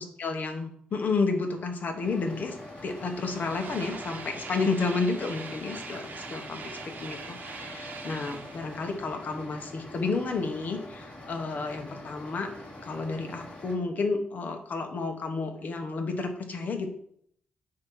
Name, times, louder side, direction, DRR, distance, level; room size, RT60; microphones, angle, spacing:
voice 1, 0.0-2.6 2.8-12.5 12.8-16.9, left 4 dB, 50° left, 4 dB, 1.2 m, -31 dB
sound 1, 1.5-1.6 1.8-10.4, right 5 dB, 55° right, 0.9 m, -44 dB
sound 2, 2.0-13.8, left 1 dB, 35° left, 2.4 m, -45 dB
8.6 x 2.9 x 6.2 m, 0.66 s
cardioid pair, 120°, 4 cm